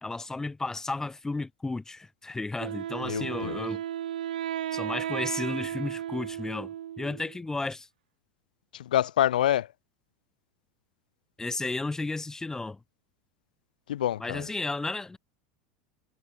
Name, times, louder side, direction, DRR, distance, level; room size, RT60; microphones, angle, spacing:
voice 1, 0.0-3.8 4.7-7.9 11.4-12.8 14.2-15.2, left 3 dB, 10° left, 3.9 m, -33 dB
Wind instrument woodwind instrument, 2.6-7.4, right 11 dB, 85° right, 5.9 m, -34 dB
voice 2, 3.0-3.6 8.7-9.7 13.9-14.5, left 12 dB, 80° left, 1.0 m, -27 dB
hypercardioid pair, 95°, 4 cm